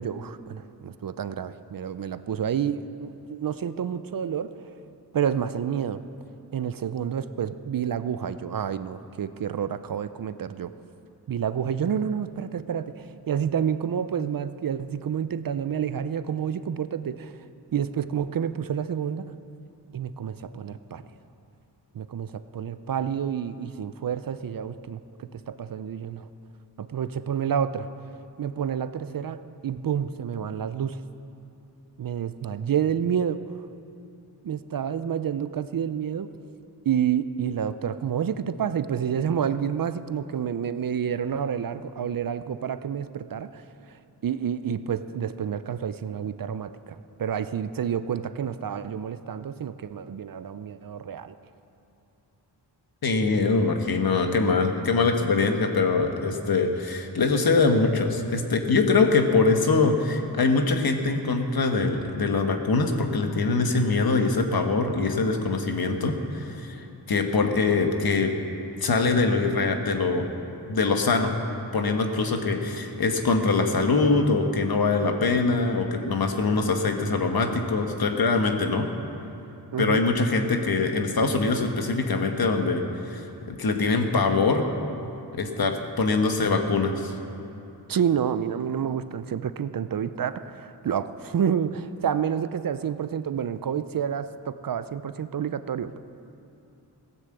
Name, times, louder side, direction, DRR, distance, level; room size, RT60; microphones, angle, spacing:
voice 1, 0.0-4.5 5.1-6.0 6.5-10.7 11.3-17.3 17.7-19.3 19.9-21.0 21.9-26.3 26.8-27.9 28.4-31.0 32.0-33.4 34.4-36.3 36.9-43.6 44.2-51.3 79.7-80.0 87.9-96.0, right 8 dB, 55° right, 13 dB, 0.6 m, -29 dB
voice 2, 53.0-68.3 68.8-70.3 70.7-71.3 71.7-78.9 79.8-84.7 85.3-87.1, left 3 dB, 60° left, 4 dB, 1.4 m, -23 dB
16.5 x 9.9 x 7.8 m, 2.8 s
wide cardioid pair, 100°, 40 cm